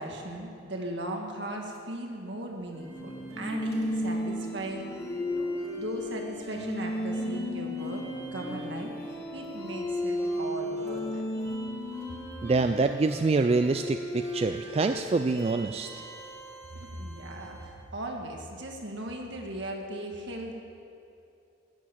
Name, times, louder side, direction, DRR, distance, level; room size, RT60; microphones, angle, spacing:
voice 1, 0.0-4.9 5.3-8.0 8.3-9.0 9.3-11.2 16.7-20.5, right 1 dB, 70° right, 1 dB, 1.7 m, -38 dB
sound 1, 2.7-17.8, left 1 dB, 15° left, 1.8 m, -35 dB
voice 2, 12.4-16.0, right 3 dB, 30° right, 8 dB, 0.3 m, -26 dB
12.0 x 7.6 x 8.5 m, 2.7 s
head